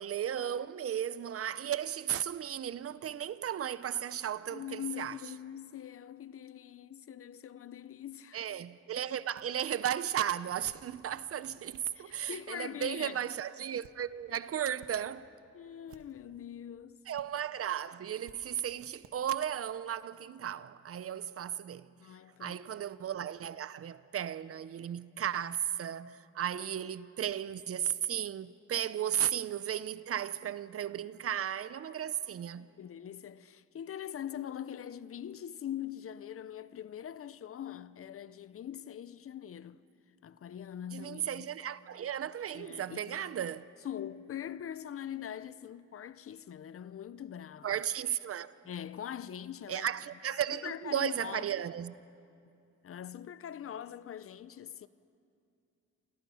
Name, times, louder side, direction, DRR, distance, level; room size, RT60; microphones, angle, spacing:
voice 1, 0.0-5.1 8.3-15.3 17.1-21.9 22.4-32.7 40.9-43.7 47.6-48.5 49.7-51.9, right 10 dB, 50° right, 0.7 m, -35 dB
voice 2, 4.5-8.5 11.9-13.3 15.5-17.0 22.0-22.6 32.5-39.8 40.2-41.5 42.5-43.4 43.8-47.8 48.6-49.9 50.5-51.5 52.8-54.9, left 10 dB, 45° left, 0.7 m, -43 dB
sound 1, 8.4-8.5 9.4-9.5 10.4-10.9 11.4-11.9 12.8-13.0 13.7-14.0 14.7-15.0 15.8-16.3 17.2-17.3 18.3-18.4 19.0-19.1, right 10 dB, 85° right, 1.5 m, -57 dB
28.5 x 24.5 x 5.7 m
cardioid pair, 90°, 30 cm